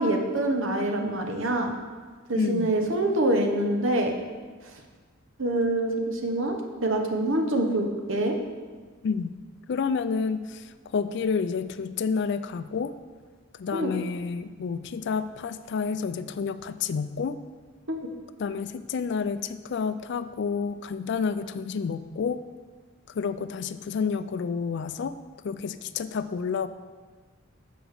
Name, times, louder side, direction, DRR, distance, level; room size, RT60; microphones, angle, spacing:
voice 1, 0.0-1.7 2.3-4.1 5.4-8.4 13.7-13.9 17.9-18.1, right 1 dB, 70° right, 3 dB, 1.0 m, -25 dB
voice 2, 2.3-2.7 9.0-9.3 9.7-12.9 13.5-17.4 18.4-22.4 23.1-25.2 25.4-26.7, left 5 dB, 55° left, 12 dB, 0.3 m, -29 dB
6.9 x 5.0 x 6.4 m, 1.4 s
head